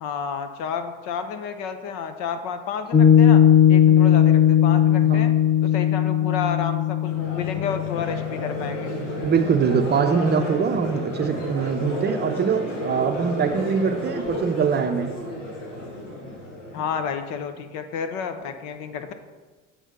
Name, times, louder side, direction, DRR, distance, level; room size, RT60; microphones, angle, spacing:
voice 1, 0.0-3.4 3.7-5.3 5.6-9.0 16.7-19.1, left 6 dB, 55° left, 8 dB, 0.8 m, -31 dB
Piano, 2.9-9.6, left 10 dB, 20° left, 1.0 m, -18 dB
Crowd, 7.0-17.2, left 1 dB, 75° left, 1.6 m, -33 dB
sound 1, 8.5-13.5, right 5 dB, 35° left, 1.8 m, -38 dB
voice 2, 9.2-15.1, right 6 dB, 30° right, 7 dB, 0.6 m, -23 dB
8.0 x 4.0 x 5.8 m, 1.3 s
figure-of-eight pair, 65°, 37 cm